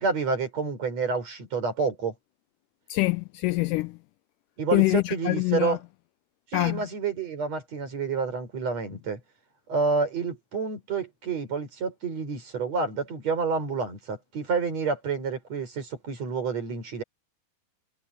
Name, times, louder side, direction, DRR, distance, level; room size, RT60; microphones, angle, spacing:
voice 1, 0.0-2.1 4.6-5.8 6.5-9.2 9.7-17.0, right 4 dB, 50° right, 6.4 m, -29 dB
voice 2, 2.9-4.0 4.7-5.8 6.5-6.8, left 22 dB, 80° left, 2.0 m, -25 dB
omnidirectional pair, 3.9 m